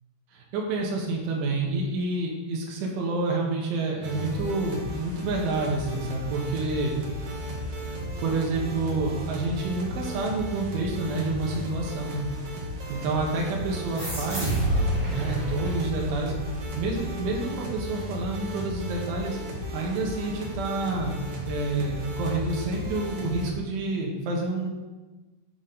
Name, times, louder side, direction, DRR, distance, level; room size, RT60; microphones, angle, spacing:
voice 1, 0.3-7.3 8.2-12.3 12.9-14.6 15.1-16.3 16.8-19.4 19.7-24.7, right 2 dB, 80° right, -1 dB, 3.9 m, -29 dB
sound 1, 4.0-23.5, right 1 dB, 60° right, 1.9 m, -35 dB
sound 2, 14.0-17.0, right 1 dB, 35° right, 1.2 m, -29 dB
13.0 x 6.2 x 4.0 m, 1.2 s
omnidirectional pair, 5.5 m